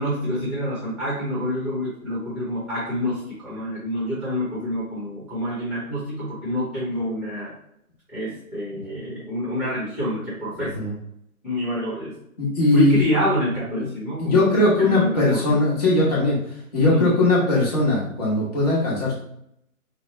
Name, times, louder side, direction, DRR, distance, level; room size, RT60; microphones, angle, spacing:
voice 1, 0.0-7.6 8.1-10.8 11.4-12.1 12.7-15.6 16.8-17.2, equal, 5° right, -9 dB, 0.9 m, -27 dB
voice 2, 12.4-13.0 13.7-13.8 14.2-16.4 16.7-19.1, left 2 dB, 25° left, -5 dB, 1.1 m, -19 dB
4.6 x 2.2 x 3.0 m, 0.74 s
figure-of-eight pair, 140°, 44 cm